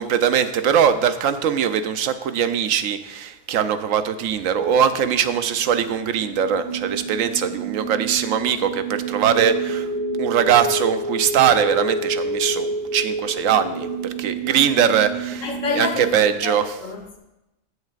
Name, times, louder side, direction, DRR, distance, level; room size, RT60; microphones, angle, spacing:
voice 1, 0.0-9.9 10.2-15.4 15.7-15.9 16.1-16.7, right 8 dB, 90° right, 1.0 m, -21 dB
sound 1, 4.4-16.0, right 2 dB, 15° left, 1.8 m, -29 dB
voice 2, 15.4-17.2, left 4 dB, 85° left, 1.6 m, -28 dB
16.0 x 6.4 x 2.5 m
omnidirectional pair, 1.3 m